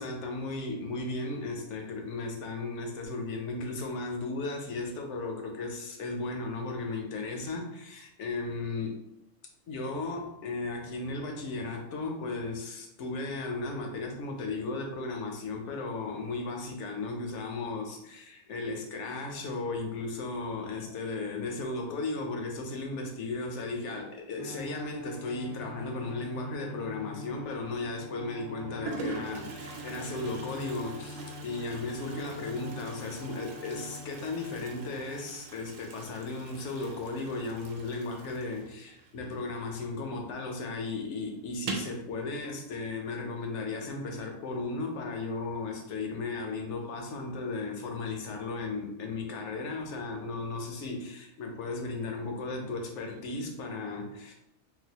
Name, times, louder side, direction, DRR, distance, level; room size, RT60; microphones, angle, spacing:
voice 1, 0.0-9.0 9.7-54.3, left 3 dB, 70° left, 3 dB, 1.0 m, -35 dB
Bowed string instrument, 24.4-35.6, left 1 dB, 15° right, 0.7 m, -45 dB
Toilet flush, 27.4-27.8 28.5-28.6 28.8-40.1 40.4-40.5 40.8-40.9 41.5-42.0, right 4 dB, 90° right, 1.0 m, -44 dB
sound 1, 28.4-42.1, right 1 dB, 50° right, 0.7 m, -57 dB
3.9 x 2.4 x 2.8 m, 0.83 s
omnidirectional pair, 1.3 m